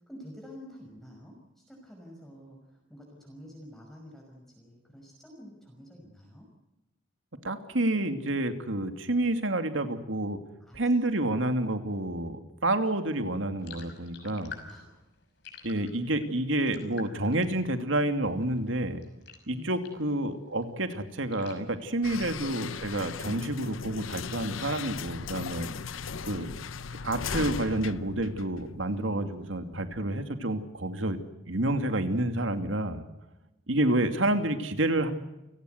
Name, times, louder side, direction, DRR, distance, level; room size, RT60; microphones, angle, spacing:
voice 1, 0.0-6.5 10.6-11.2 11.4-12.0 14.2-15.0 17.4-17.6 19.5-20.2 28.9-29.0 29.6-30.3, equal, ahead, -1 dB, 5.6 m, -49 dB
voice 2, 7.4-10.4 10.7-14.6 15.6-19.0 19.5-25.7 26.2-26.5 27.0-31.2 31.5-33.0 33.7-35.1, right 1 dB, 75° right, 7 dB, 2.6 m, -29 dB
sound 1, 13.6-20.2 20.5-22.6, left 6 dB, 60° left, 5.9 m, -50 dB
sound 2, 22.0-29.0, left 5 dB, 85° left, 0.8 m, -37 dB
29.5 x 17.5 x 8.0 m, 1.0 s
head